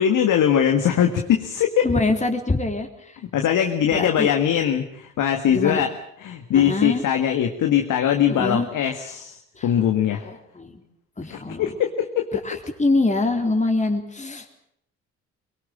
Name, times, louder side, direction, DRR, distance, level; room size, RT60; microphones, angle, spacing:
voice 1, 0.0-1.9 3.3-5.9 6.2-10.3 11.3-12.6, left 9 dB, 65° left, 5 dB, 1.9 m, -21 dB
voice 2, 1.8-3.2 3.9-4.3 5.5-5.8 6.5-7.0 8.3-8.7 9.6-9.7 10.2-10.8 11.2-11.7 12.4-14.5, left 2 dB, 20° left, 4 dB, 3.8 m, -24 dB
23.5 x 19.5 x 8.7 m, 0.73 s
hypercardioid pair, 50°, 34 cm